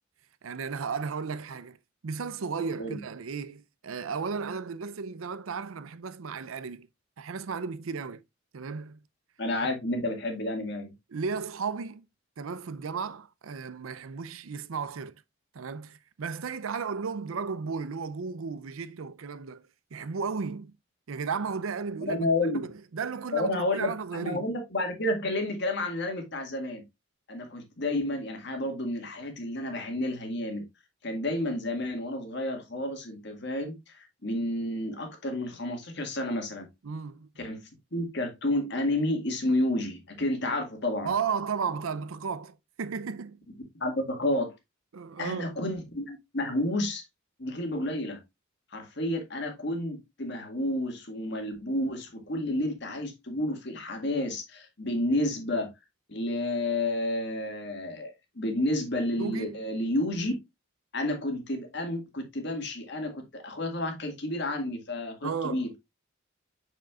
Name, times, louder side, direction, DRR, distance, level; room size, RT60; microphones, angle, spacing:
voice 1, 0.4-1.8 2.0-6.9 7.2-8.2 8.5-9.0 11.1-12.1 12.4-15.2 15.5-19.6 19.9-20.8 21.1-22.3 22.5-24.5 36.8-37.3 41.0-43.5 44.9-45.6 59.2-59.6 65.2-65.7, right 5 dB, 85° right, 0.5 m, -34 dB
voice 2, 9.4-10.9 22.1-22.7 23.3-26.8 27.3-30.6 31.0-36.7 37.4-37.6 37.9-41.1 43.8-44.5 45.2-47.0 47.4-48.2 48.7-55.7 56.1-60.3 60.9-65.7, left 1 dB, 55° left, 1.8 m, -30 dB
6.5 x 6.2 x 2.4 m
head